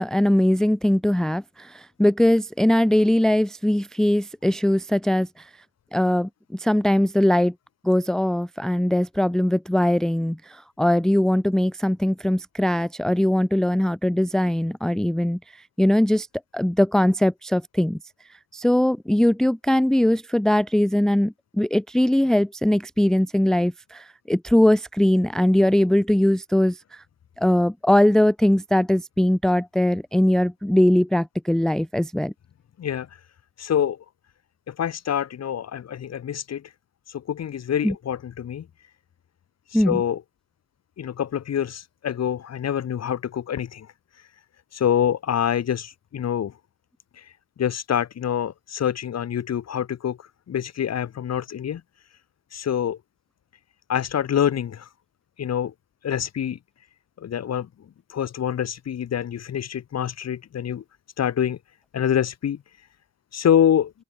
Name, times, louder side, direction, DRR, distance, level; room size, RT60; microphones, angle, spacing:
voice 1, 0.0-5.3 5.9-7.5 7.8-15.4 15.8-16.3 16.5-18.0 18.5-27.0 27.4-32.3 37.8-37.9 39.7-40.0, left 1 dB, ahead, 0.6 m, -21 dB
voice 2, 32.8-33.2 33.6-34.0 34.7-36.7 37.1-38.6 39.7-40.2 41.0-43.9 44.1-44.3 44.7-46.5 47.1-51.8 52.5-53.0 53.9-54.9 55.4-55.7 56.0-56.6 57.2-57.7 58.1-60.8 61.2-61.6 61.9-62.9 63.3-63.9, left 9 dB, 60° left, 3.7 m, -26 dB
cardioid pair, 90°, 30 cm